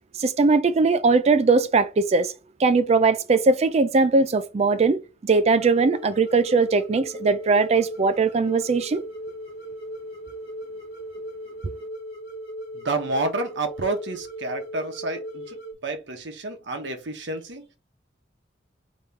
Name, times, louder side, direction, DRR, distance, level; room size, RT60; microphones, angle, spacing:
voice 1, 0.2-2.3 2.6-9.0, right 4 dB, 35° right, 0.4 m, -20 dB
sound 1, 5.5-15.7, right 1 dB, 55° left, 1.3 m, -37 dB
voice 2, 12.7-15.6 15.8-17.6, right 2 dB, 65° right, 1.0 m, -29 dB
3.6 x 3.0 x 4.1 m
head